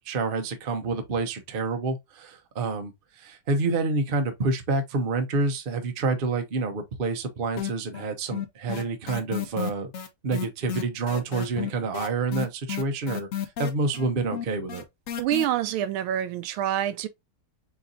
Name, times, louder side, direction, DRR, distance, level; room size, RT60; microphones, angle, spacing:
voice 1, 0.0-9.9 10.2-13.3 13.6-14.8, right 3 dB, 65° right, 0.5 m, -28 dB
sound 1, 7.6-8.1 8.3-15.4, left 9 dB, 65° left, 0.8 m, -32 dB
voice 2, 15.2-17.1, right 11 dB, 85° right, 1.4 m, -26 dB
4.6 x 3.9 x 2.6 m
omnidirectional pair, 2.3 m